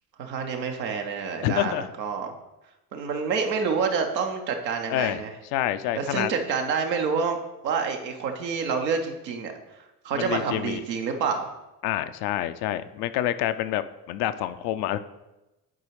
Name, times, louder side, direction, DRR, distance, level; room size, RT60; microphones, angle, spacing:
voice 1, 0.2-2.3 2.9-5.3 5.9-7.4 7.6-9.5 10.0-11.5, right 5 dB, 80° right, 4 dB, 0.8 m, -28 dB
voice 2, 1.4-1.9 4.9-5.2 5.5-6.3 10.1-10.8 11.8-15.0, left 12 dB, 55° left, 12 dB, 0.5 m, -27 dB
9.7 x 4.8 x 3.1 m, 1.0 s
figure-of-eight pair, 50°, 50 cm